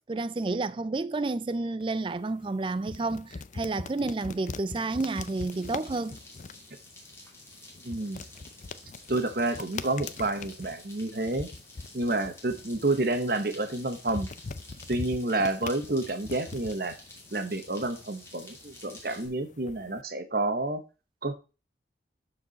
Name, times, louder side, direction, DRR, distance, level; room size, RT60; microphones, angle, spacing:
voice 1, 0.1-6.2, right 3 dB, 25° right, 0.3 m, -30 dB
sound 1, 1.8-20.0, left 4 dB, 40° left, 0.5 m, -43 dB
sound 2, 4.9-19.3, left 2 dB, 15° left, 2.6 m, -50 dB
voice 2, 7.8-8.2 9.1-11.5 11.9-14.3 14.9-17.0 17.3-20.8 21.2-21.3, right 2 dB, 55° right, 1.1 m, -29 dB
12.0 x 4.8 x 4.1 m
head